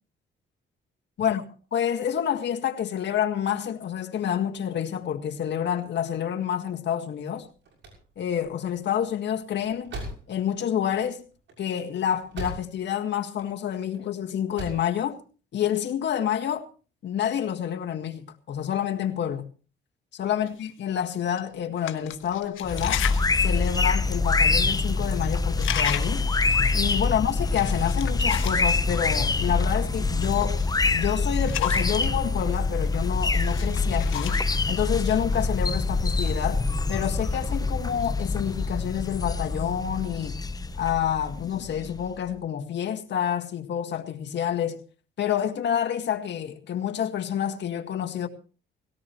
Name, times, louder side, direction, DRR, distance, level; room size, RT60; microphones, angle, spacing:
voice 1, 1.7-7.5 8.2-9.9 10.3-11.2 11.6-15.2 15.5-16.7 17.0-19.5 20.1-23.0 23.4-26.3 26.7-30.6 30.9-34.4 34.7-36.6 36.9-40.4 40.8-44.8 45.2-48.3, left 9 dB, 60° left, 1.8 m, -28 dB
sound 1, 7.6-13.0 13.2-14.0 14.3-14.9, right 1 dB, 70° right, 6.6 m, -40 dB
sound 2, 20.5-20.6 21.3-21.4 21.8-23.3 23.7-23.8 24.6-24.7 24.9-25.2 25.5-26.3 27.4-28.7 30.6-32.1 33.2-34.6, left 12 dB, 85° left, 1.5 m, -33 dB
sound 3, 22.6-42.1, left 3 dB, 20° left, 0.9 m, -25 dB
18.5 x 17.5 x 3.1 m
cardioid pair, 90°, 20 cm